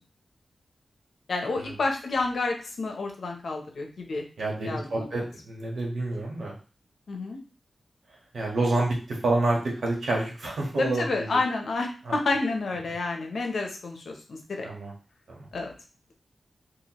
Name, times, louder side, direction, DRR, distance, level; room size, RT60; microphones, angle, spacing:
voice 1, 1.3-4.2 4.6-5.3 7.1-7.4 10.8-14.7 15.5-15.7, left 3 dB, 75° left, 2 dB, 0.8 m, -29 dB
voice 2, 4.4-6.5 8.3-11.4 12.1-12.2 14.6-14.9 15.3-15.5, right 2 dB, 80° right, -3 dB, 1.4 m, -28 dB
4.4 x 2.6 x 3.0 m, 0.36 s
wide cardioid pair, 135°, 0 cm